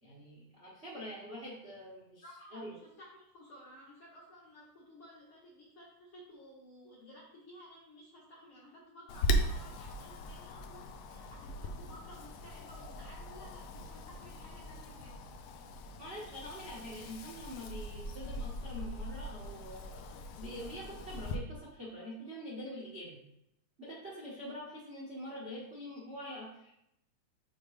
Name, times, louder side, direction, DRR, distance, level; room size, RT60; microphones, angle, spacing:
voice 1, 0.0-2.2 2.5-2.8 16.0-23.2 23.8-26.7, equal, 40° right, -5 dB, 0.9 m, -45 dB
voice 2, 2.2-15.2, equal, 55° left, -5 dB, 1.7 m, -55 dB
Wind, 9.1-21.4, equal, 75° left, 1.7 m, -39 dB
7.1 x 5.0 x 3.2 m, 0.80 s
omnidirectional pair, 3.7 m